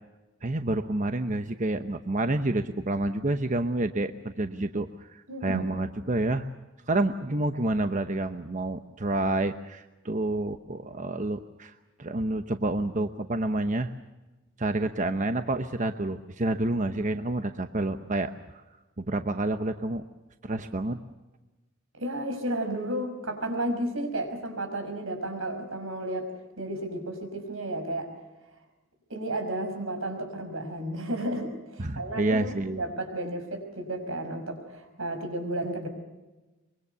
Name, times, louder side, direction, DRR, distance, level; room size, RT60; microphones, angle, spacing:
voice 1, 0.4-6.5 6.9-11.7 12.0-13.9 14.6-18.6 19.0-20.0 20.4-21.0 31.8-32.8, right 2 dB, 40° right, 8 dB, 0.9 m, -29 dB
voice 2, 5.3-5.7 21.9-28.1 29.1-35.9, right 1 dB, 85° right, 6 dB, 5.7 m, -33 dB
24.0 x 23.5 x 6.8 m, 1.1 s
head